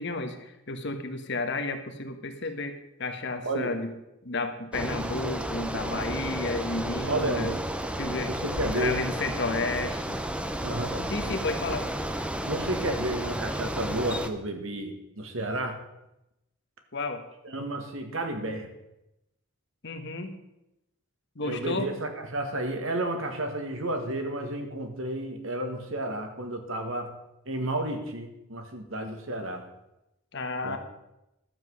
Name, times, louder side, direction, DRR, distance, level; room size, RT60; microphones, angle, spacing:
voice 1, 0.0-3.9 4.2-7.5 8.0-8.3 8.6-10.2 11.1-11.9 16.9-17.2 19.8-20.3 21.3-21.9 30.3-30.8, left 3 dB, 55° left, 6 dB, 1.2 m, -32 dB
Bicycle, 4.7-14.3, right 1 dB, 5° right, 0.6 m, -32 dB
voice 2, 7.0-7.6 8.3-9.0 10.6-11.1 12.4-15.8 17.4-18.7 21.4-27.2 27.5-29.7 30.6-30.8, right 1 dB, 65° right, 5 dB, 1.7 m, -31 dB
12.0 x 7.6 x 6.3 m, 0.90 s
head